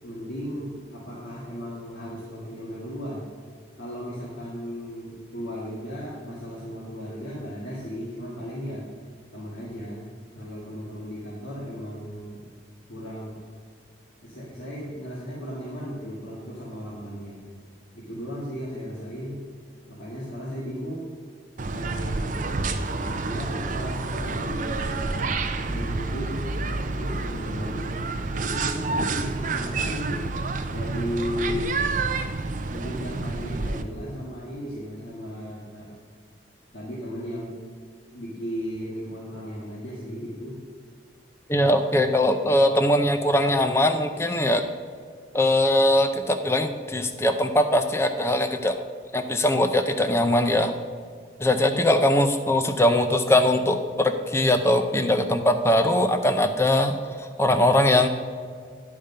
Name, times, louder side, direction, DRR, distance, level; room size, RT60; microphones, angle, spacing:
voice 1, 0.0-3.2 3.8-8.9 9.3-10.1 10.4-12.5 12.9-13.4 14.2-17.4 17.9-19.4 19.9-21.2 21.7-22.5 23.0-24.9 25.7-28.0 28.3-30.3 30.7-31.8 32.7-35.9 36.7-37.6 38.1-40.6, equal, 90° left, -7 dB, 1.9 m, -35 dB
sound 1, 21.6-33.8, right 3 dB, 45° right, 0.5 m, -29 dB
voice 2, 41.5-44.6 45.3-48.8 49.1-50.7 51.4-58.1, left 1 dB, 15° left, 7 dB, 0.5 m, -21 dB
10.5 x 5.1 x 5.5 m, 2.1 s
head